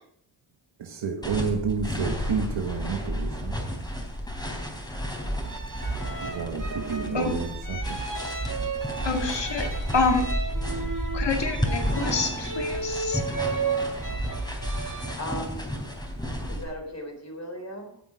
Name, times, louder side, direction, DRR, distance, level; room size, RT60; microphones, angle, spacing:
voice 1, 0.8-3.6 6.2-8.0, right 5 dB, 90° right, 4 dB, 1.2 m, -30 dB
sound 1, 1.2-16.6, equal, 10° left, 3.4 m, -32 dB
sound 2, 5.4-15.1, right 4 dB, 45° right, 2.3 m, -33 dB
voice 2, 9.0-9.7 9.9-10.2 11.1-13.2, left 4 dB, 70° left, 4 dB, 2.1 m, -27 dB
voice 3, 15.2-15.7 16.5-18.0, equal, 35° left, 3 dB, 3.9 m, -37 dB
14.5 x 8.2 x 5.0 m, 0.69 s
cardioid pair, 60°, 44 cm